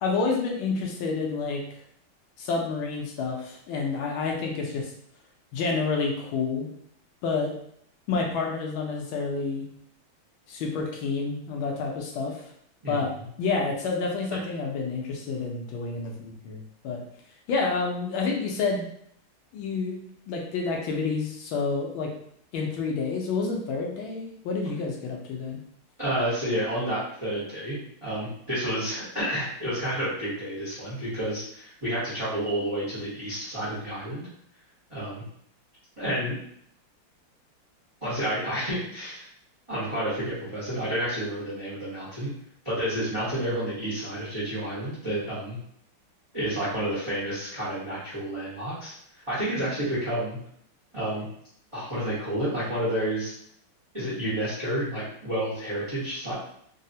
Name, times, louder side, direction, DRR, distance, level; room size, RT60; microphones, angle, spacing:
voice 1, 0.0-1.6 2.4-4.9 5.5-6.7 7.2-7.5 8.1-9.7 10.5-12.4 12.9-13.1 13.4-17.0 17.5-18.9 19.5-20.0 20.3-22.1 22.5-25.6, left 4 dB, 75° left, 0 dB, 1.3 m, -29 dB
voice 2, 26.0-34.3 34.9-35.2 36.0-36.3 38.0-39.3 39.7-42.3 42.6-45.6 46.3-50.4 50.9-51.3 51.7-53.3 53.9-56.3, right 1 dB, 25° right, -9 dB, 0.7 m, -30 dB
3.8 x 2.0 x 2.7 m, 0.66 s
omnidirectional pair, 2.3 m